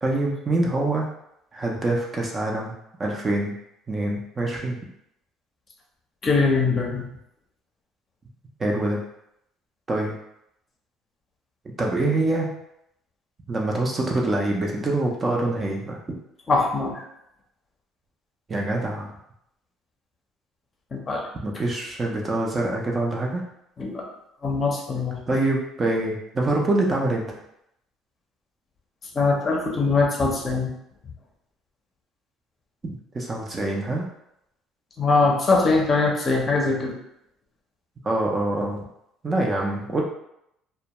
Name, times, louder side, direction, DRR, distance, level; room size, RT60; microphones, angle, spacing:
voice 1, 0.0-1.1 1.5-2.7 3.0-3.5 3.9-4.8 8.6-9.0 9.9-10.2 11.6-12.5 13.5-16.0 18.5-19.1 21.4-23.4 25.3-27.3 33.1-34.1 38.0-38.8 39.2-40.0, right 2 dB, 25° right, -1 dB, 0.5 m, -25 dB
voice 2, 6.2-7.0 16.5-17.0 20.9-21.2 23.8-24.1 24.4-25.2 29.1-30.7 35.0-36.9, left 3 dB, 30° left, 0 dB, 0.6 m, -22 dB
2.2 x 2.1 x 2.9 m, 0.78 s
cardioid pair, 105°, 0 cm